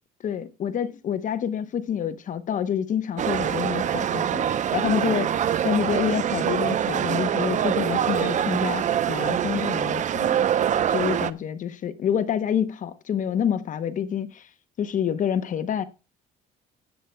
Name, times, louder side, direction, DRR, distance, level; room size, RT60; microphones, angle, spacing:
voice 1, 0.2-4.5 4.7-10.4 10.9-14.5 14.8-15.8, left 8 dB, 50° left, 0.8 m, -27 dB
sound 1, 3.2-11.3, right 9 dB, 45° right, 0.7 m, -24 dB
18.0 x 8.2 x 2.2 m
cardioid pair, 110°, 17 cm